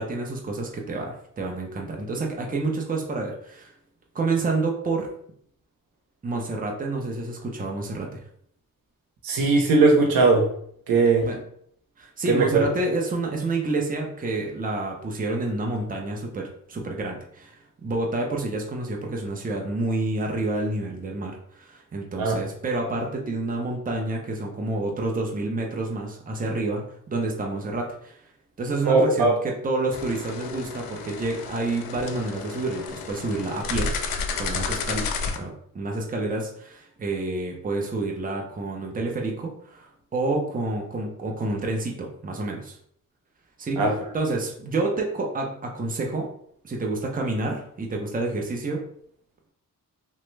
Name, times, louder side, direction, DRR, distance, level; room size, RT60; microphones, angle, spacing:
voice 1, 0.0-3.7 4.1-5.1 6.2-8.2 11.2-11.4 12.0-28.2 28.6-34.0 34.3-42.8 43.6-46.3 46.6-48.9, right 2 dB, 25° right, 0 dB, 0.7 m, -29 dB
voice 2, 9.2-10.5 10.9-11.3 12.3-12.7 22.2-22.4 28.9-29.3 43.8-43.9, right 3 dB, 90° right, 1 dB, 0.8 m, -19 dB
sound 1, 29.9-35.4, left 4 dB, 85° left, 0.5 m, -31 dB
3.0 x 2.2 x 3.2 m, 0.65 s
cardioid pair, 80°, 34 cm